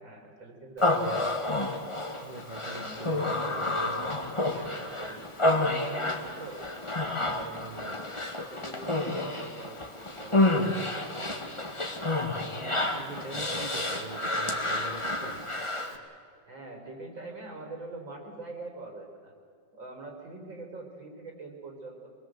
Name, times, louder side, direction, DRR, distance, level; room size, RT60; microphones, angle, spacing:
voice 1, 0.0-1.1 2.6-3.1 4.3-6.6 7.1-8.0 8.4-11.1 16.5-19.3 19.7-22.1, right 3 dB, 75° right, 1 dB, 4.9 m, -44 dB
Human voice, 0.8-16.0, left 2 dB, 15° left, 1.7 m, -30 dB
voice 2, 1.0-1.4 2.2-4.0 7.5-8.0 10.5-10.9 12.6-15.4, right 4 dB, 40° right, 5 dB, 0.7 m, -44 dB
25.5 x 20.5 x 7.7 m, 2.2 s
omnidirectional pair, 2.1 m